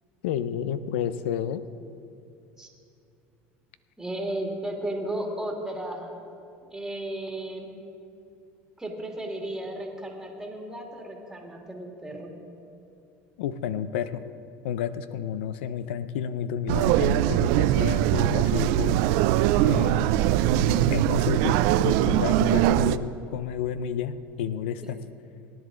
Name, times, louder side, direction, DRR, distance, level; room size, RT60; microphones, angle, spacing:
voice 1, 0.2-1.6 13.4-14.2 14.6-19.0 19.6-25.0, left 8 dB, 85° left, 14 dB, 0.6 m, -31 dB
voice 2, 4.0-6.2 6.7-7.7 8.8-12.3 24.8-24.9, right 1 dB, 5° right, 0 dB, 2.3 m, -34 dB
sound 1, 16.7-23.0, right 14 dB, 70° right, 0.3 m, -22 dB
18.0 x 10.5 x 3.8 m, 2.6 s
supercardioid pair, 105°, 6 cm